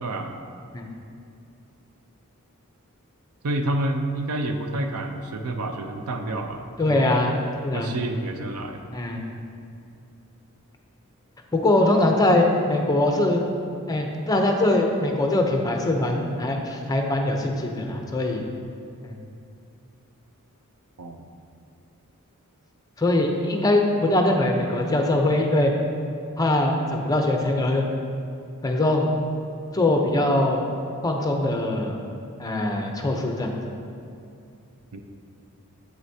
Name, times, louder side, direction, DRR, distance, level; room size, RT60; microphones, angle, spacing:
voice 1, 0.0-0.3 3.4-7.1 7.7-8.8 21.0-21.3 34.9-35.0, right 1 dB, 85° right, 5 dB, 0.6 m, -29 dB
voice 2, 6.8-7.4 7.6-7.9 8.9-9.2 11.5-13.4 13.9-18.4 23.0-25.7 26.4-27.8 28.6-29.1 29.7-30.6 31.0-32.0 32.4-33.6, left 1 dB, 15° left, 2 dB, 0.6 m, -22 dB
8.0 x 7.9 x 2.8 m, 2.5 s
head